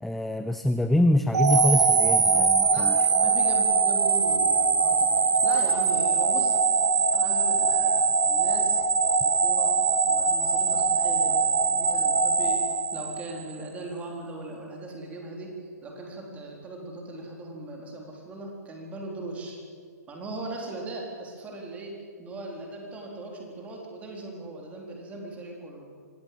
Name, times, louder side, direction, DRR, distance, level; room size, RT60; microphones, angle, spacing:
voice 1, 0.0-2.9, left 1 dB, ahead, 10 dB, 0.5 m, -25 dB
sound 1, 1.3-13.5, right 5 dB, 65° right, 1.8 m, -22 dB
voice 2, 2.7-6.6 7.1-8.8 9.2-9.7 10.1-11.5 11.8-15.5 15.8-19.6 20.1-25.9, right 2 dB, 15° right, 0 dB, 4.2 m, -39 dB
25.0 x 17.0 x 7.8 m, 2.2 s
figure-of-eight pair, 120°, 9 cm